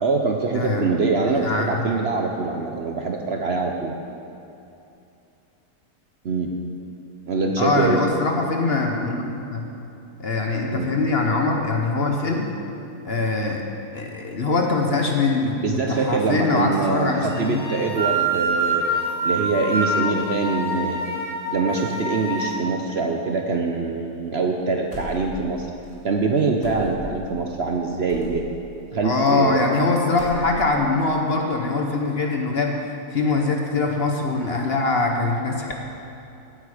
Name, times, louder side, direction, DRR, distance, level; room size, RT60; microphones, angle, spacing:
voice 1, 0.0-4.0 6.2-6.5 7.3-8.0 10.7-10.9 15.6-18.9 19.2-21.0 21.5-25.7 26.0-28.4 28.9-29.6, right 4 dB, 50° right, 2 dB, 0.8 m, -24 dB
voice 2, 0.5-0.8 1.4-1.8 7.6-9.6 10.2-12.4 13.0-13.6 13.9-15.6 15.9-17.6 29.0-32.7 33.1-35.8, left 3 dB, 45° left, 1 dB, 1.1 m, -22 dB
sound 1, 17.3-22.6, right 2 dB, 5° left, 2.4 m, -26 dB
sound 2, 24.9-25.6 25.8-26.0 26.6-27.2 28.1-28.4 29.3-29.8 30.1-30.8, left 2 dB, 60° left, 2.7 m, -38 dB
16.0 x 8.5 x 5.0 m, 2.7 s
omnidirectional pair, 1.7 m